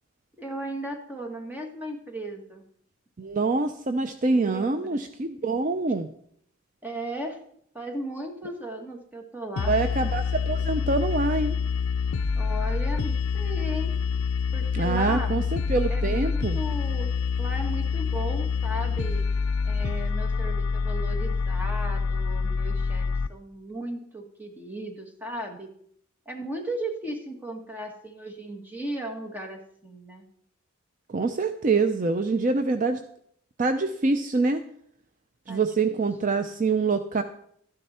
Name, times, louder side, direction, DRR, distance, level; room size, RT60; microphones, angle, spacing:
voice 1, 0.4-2.6 4.3-5.0 6.8-7.4 7.7-9.7 12.3-14.0 14.5-15.4 15.9-17.1 17.4-19.3 19.6-25.7 26.2-30.3 35.5-35.6, right 1 dB, 10° right, 3 dB, 1.5 m, -36 dB
voice 2, 3.2-6.1 9.7-11.6 14.7-16.6 31.1-33.0 33.6-34.6 35.5-37.2, right 3 dB, 40° right, 9 dB, 0.5 m, -25 dB
sound 1, 9.6-23.3, left 5 dB, 80° left, 0.4 m, -26 dB
12.5 x 10.0 x 4.3 m, 0.68 s
head